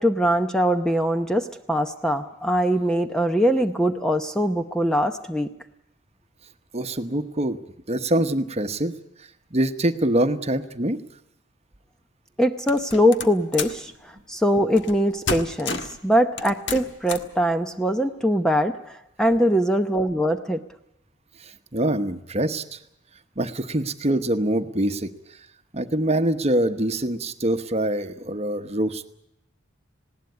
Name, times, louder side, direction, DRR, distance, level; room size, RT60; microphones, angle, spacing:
voice 1, 0.0-5.5 12.4-20.6, equal, 5° left, 7 dB, 0.7 m, -22 dB
voice 2, 6.7-7.6 7.9-8.9 9.5-11.0 21.4-22.8 23.4-25.1 25.7-29.1, right 1 dB, 35° right, 8 dB, 1.1 m, -24 dB
sound 1, 12.7-13.8 14.8-15.0 15.3-16.0 16.4-17.3, left 4 dB, 65° left, 1.4 m, -30 dB
19.5 x 17.5 x 9.5 m, 0.82 s
head